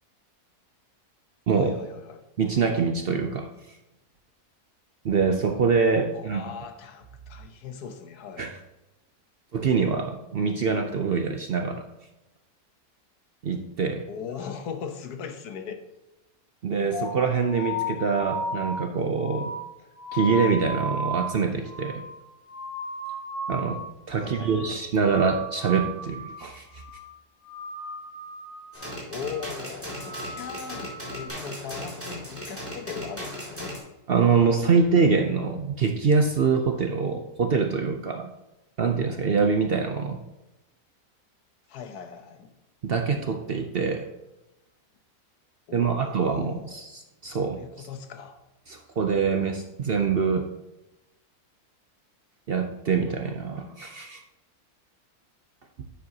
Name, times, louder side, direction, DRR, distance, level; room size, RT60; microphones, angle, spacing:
voice 1, 1.5-2.3 6.1-8.5 14.1-15.8 24.2-24.8 29.1-33.8 41.7-42.5 45.7-46.8 47.3-48.4, left 6 dB, 85° left, 7 dB, 1.4 m, -39 dB
voice 2, 2.4-3.5 5.0-6.4 8.4-8.5 9.5-11.8 13.4-14.0 16.6-19.5 20.1-22.0 23.5-26.8 34.1-38.3 38.8-40.2 42.8-44.1 45.7-47.9 48.7-50.5 52.5-54.2, right 5 dB, 55° right, 5 dB, 0.6 m, -24 dB
sound 1, 16.9-23.9 24.2-24.7 24.9-26.4 26.7-27.1 27.4-28.9 29.2-29.6 29.9-31.3, equal, 60° left, 3.3 m, -35 dB
sound 2, 28.7-33.8, equal, 10° right, 2.6 m, -37 dB
9.9 x 7.7 x 2.8 m, 0.98 s
omnidirectional pair, 1.6 m